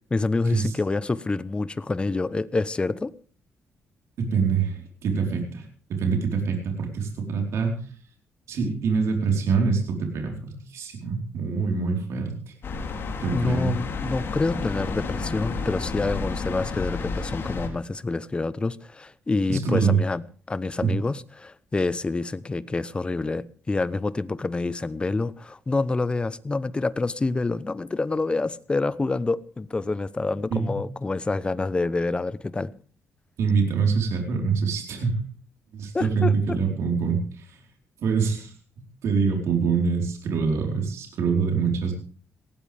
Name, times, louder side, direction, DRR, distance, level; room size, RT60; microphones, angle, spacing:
voice 1, 0.1-3.1 13.3-32.7 35.9-36.6, left 3 dB, 20° left, 0.9 m, -27 dB
voice 2, 4.2-5.6 5.9-7.8 8.5-12.5 13.2-13.7 19.5-20.0 20.8-20.9 30.5-30.7 33.4-35.2 35.7-37.6 38.0-38.5 39.0-41.9, right 5 dB, 80° right, 4.4 m, -25 dB
sound 1, 12.6-17.7, left 4 dB, 50° left, 3.8 m, -31 dB
19.0 x 17.5 x 3.5 m
cardioid pair, 110°, 5 cm